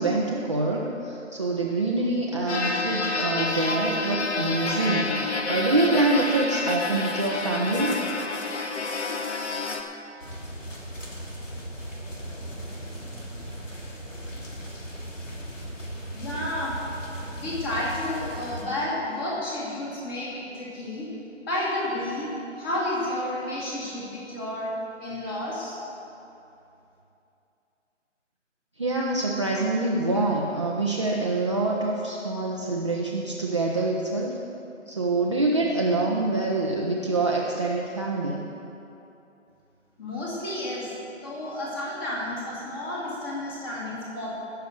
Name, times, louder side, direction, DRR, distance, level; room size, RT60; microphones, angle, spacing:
voice 1, 0.0-8.0 28.8-34.4 34.9-38.4, right 2 dB, 25° right, -4 dB, 0.6 m, -25 dB
sound 1, 2.5-9.8, left 3 dB, 60° left, 1.4 m, -28 dB
sound 2, 10.2-18.6, right 1 dB, 80° left, 3.1 m, -37 dB
voice 2, 16.1-16.8 17.4-21.1 21.4-22.3 22.6-24.7 25.0-25.8 40.0-40.9 41.2-44.3, left 1 dB, 20° left, -6 dB, 2.6 m, -31 dB
16.0 x 6.9 x 6.5 m, 2.8 s
figure-of-eight pair, 160°, 38 cm